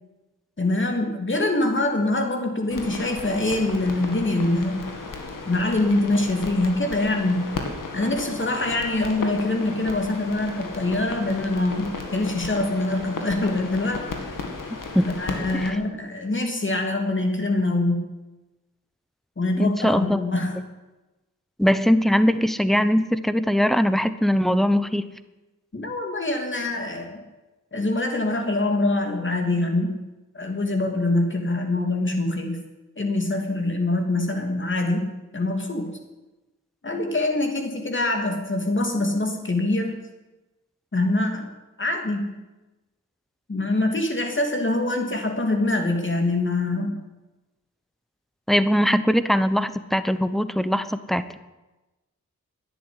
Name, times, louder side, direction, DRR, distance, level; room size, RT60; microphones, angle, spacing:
voice 1, 0.6-4.8 5.5-7.5 7.9-14.4 15.2-18.0 19.4-20.6 25.7-27.2 27.7-30.0 30.3-32.6 33.0-35.9 36.8-40.0 40.9-41.5 41.8-42.4 43.5-47.0, left 2 dB, 40° left, 3 dB, 3.0 m, -24 dB
sound 1, 2.7-15.7, left 3 dB, 90° left, 2.1 m, -35 dB
voice 2, 19.6-20.2 21.6-25.1 48.5-51.4, equal, ahead, 12 dB, 0.9 m, -21 dB
11.5 x 10.5 x 10.0 m, 1.1 s
wide cardioid pair, 70°, 31 cm